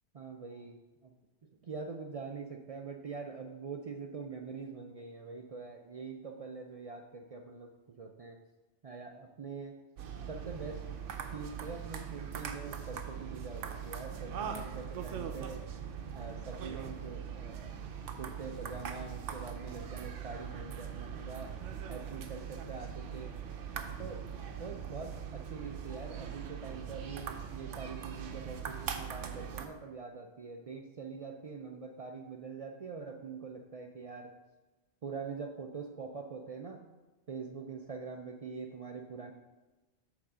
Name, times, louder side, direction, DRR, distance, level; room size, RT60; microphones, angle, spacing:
voice 1, 0.1-8.4 8.8-9.8 10.3-10.9 11.3-15.6 16.1-17.7 18.2-21.5 21.9-23.3 24.0-24.2 24.6-34.3 35.0-36.8 37.3-39.3, right 5 dB, 70° right, 3 dB, 0.3 m, -44 dB
sound 1, 10.0-29.7, right 7 dB, 85° right, 1.0 m, -41 dB
6.1 x 4.0 x 6.1 m, 1.1 s
omnidirectional pair, 1.2 m